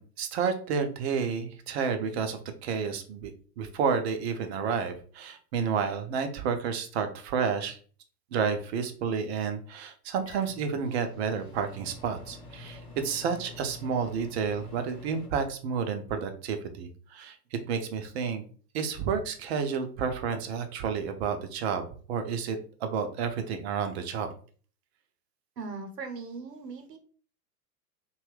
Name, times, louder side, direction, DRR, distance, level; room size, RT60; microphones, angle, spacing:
voice 1, 0.0-7.8 8.3-17.4 17.7-18.4 18.7-24.3, right 6 dB, 40° right, 7 dB, 0.6 m, -30 dB
Microwave oven, 10.2-15.3, left 3 dB, 10° left, 0.5 m, -47 dB
voice 2, 25.6-27.0, right 4 dB, 75° right, 5 dB, 0.9 m, -39 dB
2.8 x 2.3 x 3.1 m, 0.42 s
figure-of-eight pair, 95°, 49 cm